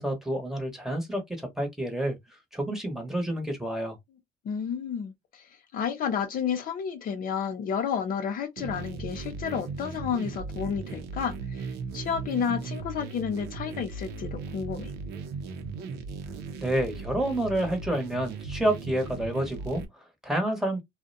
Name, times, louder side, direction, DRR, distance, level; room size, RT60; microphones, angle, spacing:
voice 1, 0.0-2.2 2.5-4.0 16.6-20.8, right 1 dB, ahead, 0.9 m, -29 dB
voice 2, 4.4-11.7 11.9-14.9, left 7 dB, 55° left, 0.5 m, -31 dB
sound 1, 8.6-19.9, right 4 dB, 80° right, 0.6 m, -37 dB
2.5 x 2.1 x 2.6 m
cardioid pair, 110°, 17 cm